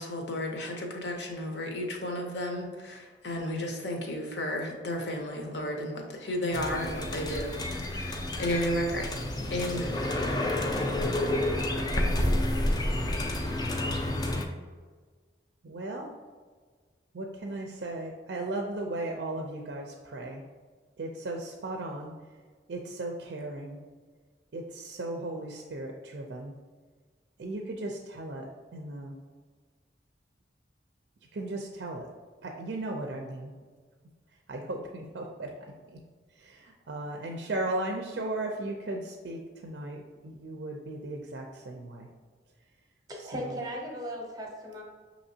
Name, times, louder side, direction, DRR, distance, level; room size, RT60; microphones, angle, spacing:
voice 1, 0.0-7.5 7.8-9.1 9.5-10.0, left 1 dB, 65° left, 1 dB, 0.8 m, -33 dB
sound 1, 6.5-14.5, left 1 dB, 20° left, 0.3 m, -29 dB
voice 2, 15.6-16.1 17.1-20.4 21.0-22.1 22.7-23.8 24.5-26.5 27.4-29.1 31.3-32.1 32.4-33.5 34.5-35.5 36.4-42.1, right 2 dB, 65° right, 2 dB, 0.4 m, -36 dB
voice 3, 43.1-44.8, equal, 20° right, 0 dB, 0.7 m, -37 dB
5.9 x 3.0 x 2.7 m, 1.5 s
head